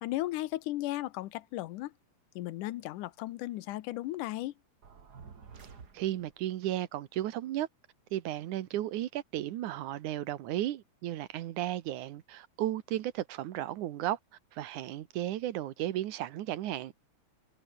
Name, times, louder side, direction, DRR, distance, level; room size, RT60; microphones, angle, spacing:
voice 1, 0.0-1.9 2.4-4.5, left 16 dB, 85° left, 2.4 m, -35 dB
sound 1, 4.8-6.5, right 5 dB, 35° right, 2.3 m, -51 dB
voice 2, 5.9-7.7 8.1-14.2 14.5-17.1, right 13 dB, 80° right, 2.5 m, -34 dB
omnidirectional pair, 3.5 m